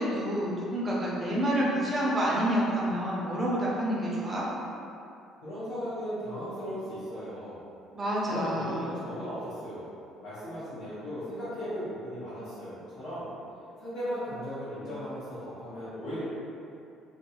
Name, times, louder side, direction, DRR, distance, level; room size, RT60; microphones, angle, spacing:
voice 1, 0.0-4.4 7.9-9.0, equal, 20° right, -5 dB, 0.5 m, -28 dB
voice 2, 5.4-7.6 8.2-9.9 10.2-13.3 13.8-16.3, equal, 60° left, -15 dB, 0.8 m, -37 dB
2.3 x 2.2 x 2.9 m, 2.6 s
cardioid pair, 165°, 0 cm